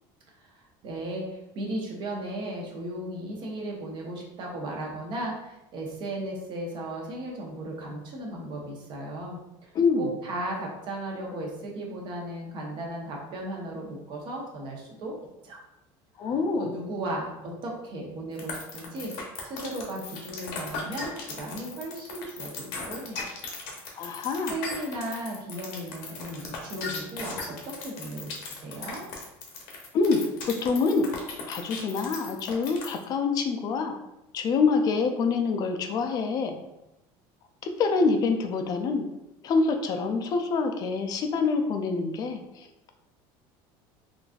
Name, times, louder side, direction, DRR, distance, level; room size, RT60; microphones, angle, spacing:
voice 1, 0.4-1.2 1.5-9.7 10.0-15.2 15.4-15.6 16.2-19.1 19.4-23.3 24.5-27.4 27.6-29.0, right 1 dB, 45° right, -1 dB, 0.8 m, -36 dB
voice 2, 9.7-10.1 16.2-16.7 24.0-24.5 29.9-31.1 31.5-34.0 34.3-36.6 37.8-39.1 39.4-42.9, left 4 dB, 35° left, 5 dB, 0.4 m, -26 dB
sound 1, 18.4-33.0, left 5 dB, 80° left, 0.9 m, -37 dB
3.9 x 2.5 x 2.4 m, 0.91 s
cardioid pair, 150°, 11 cm